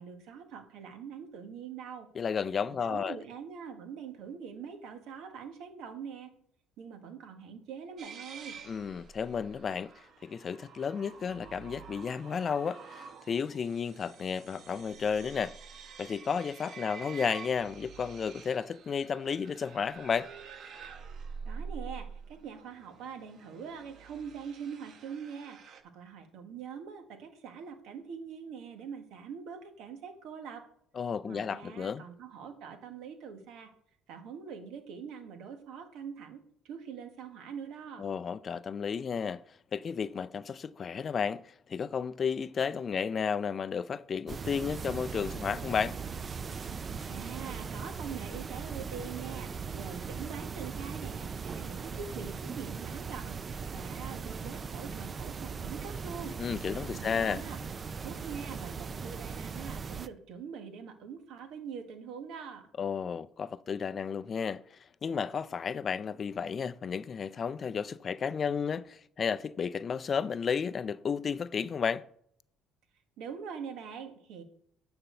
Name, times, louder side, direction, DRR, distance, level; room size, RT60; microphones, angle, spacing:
voice 1, 0.0-2.1 2.9-6.3 6.8-8.6 21.4-30.6 31.2-33.7 34.1-36.4 36.6-38.1 47.1-56.3 56.9-57.6 58.0-62.7 73.2-74.4, right 6 dB, 70° right, 1.7 m, -43 dB
voice 2, 2.1-3.2 8.7-9.9 10.2-15.6 16.0-20.3 31.0-32.0 38.0-39.4 39.7-46.0 56.4-57.4 62.8-72.1, left 6 dB, 40° left, 0.4 m, -33 dB
sound 1, 8.0-25.8, right 6 dB, 55° right, 1.1 m, -48 dB
sound 2, 44.3-60.1, right 5 dB, 35° right, 0.4 m, -39 dB
8.9 x 4.4 x 6.7 m
cardioid pair, 100°, 0 cm